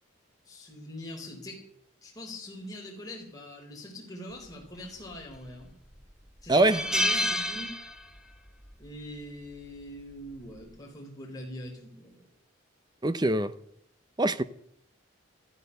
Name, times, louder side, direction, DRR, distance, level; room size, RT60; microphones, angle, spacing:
voice 1, 0.4-1.6 2.0-5.7 6.4-7.7 8.8-12.3, left 1 dB, 20° left, 4.2 m, -43 dB
sound 1, 5.1-5.7 6.0-6.1 6.5-8.4 8.6-8.9 10.1-10.4, left 1 dB, 5° right, 1.1 m, -29 dB
voice 2, 6.5-6.8 13.0-13.5 14.2-14.4, right 2 dB, 20° right, 0.6 m, -23 dB
14.0 x 13.0 x 6.8 m
head